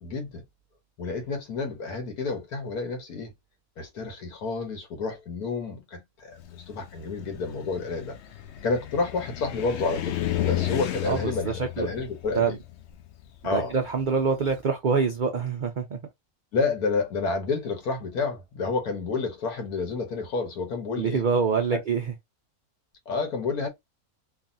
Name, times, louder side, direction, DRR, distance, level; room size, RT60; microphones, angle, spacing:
voice 1, 0.0-0.4 1.0-3.3 3.8-8.2 8.6-12.6 13.4-13.7 16.5-21.2 21.7-21.8 23.1-23.7, left 4 dB, 90° left, 1.6 m, -30 dB
Car, 6.4-14.6, left 12 dB, 65° left, 0.7 m, -33 dB
voice 2, 11.0-11.9 12.3-12.6 13.4-16.0 21.0-22.1, right 5 dB, 85° right, 0.4 m, -25 dB
3.3 x 2.4 x 2.6 m
omnidirectional pair, 1.6 m